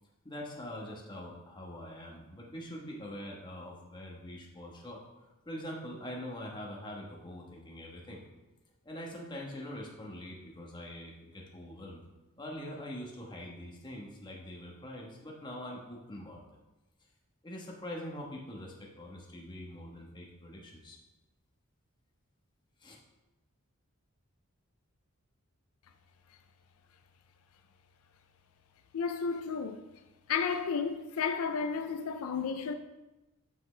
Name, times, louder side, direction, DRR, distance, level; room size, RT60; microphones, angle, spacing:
voice 1, 0.2-5.0 5.4-8.2 8.8-12.0 12.4-16.4 17.4-21.0 22.8-23.0, left 1 dB, 20° left, 1.2 m, -43 dB
voice 2, 28.9-29.8 30.3-32.7, left 5 dB, 80° left, 0.4 m, -32 dB
7.6 x 6.0 x 3.3 m
head